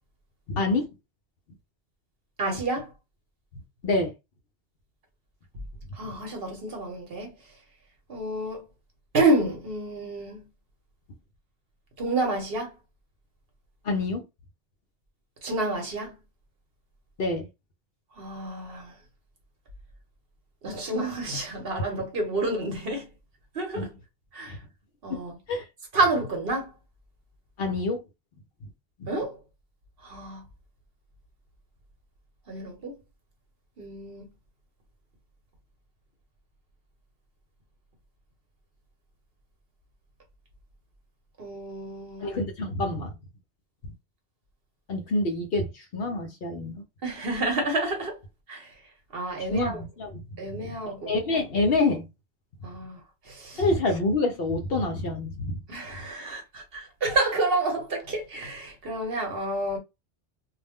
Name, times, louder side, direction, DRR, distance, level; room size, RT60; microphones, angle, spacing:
voice 1, 0.5-0.9 3.8-4.1 13.8-14.3 17.2-17.5 23.7-23.9 24.5-24.6 25.1-25.2 25.5-25.6 27.6-28.0 29.0-29.1 42.2-43.1 44.9-46.8 49.5-50.4 50.9-52.1 53.6-55.6, left 2 dB, 60° left, 0.8 m, -27 dB
voice 2, 2.4-2.9 6.0-7.3 8.1-8.6 9.1-10.5 12.0-12.7 15.4-16.1 18.2-18.9 20.6-23.1 23.5-23.9 24.3-24.5 25.0-25.3 25.9-26.7 29.1-29.4 30.0-30.4 32.5-32.9 33.8-34.3 41.4-42.3 47.0-48.2 48.5-48.7 49.1-49.8 50.4-51.2 52.6-53.0 53.3-53.6 55.7-59.8, right 2 dB, 55° right, 1.1 m, -29 dB
2.4 x 2.0 x 3.5 m
omnidirectional pair, 1.2 m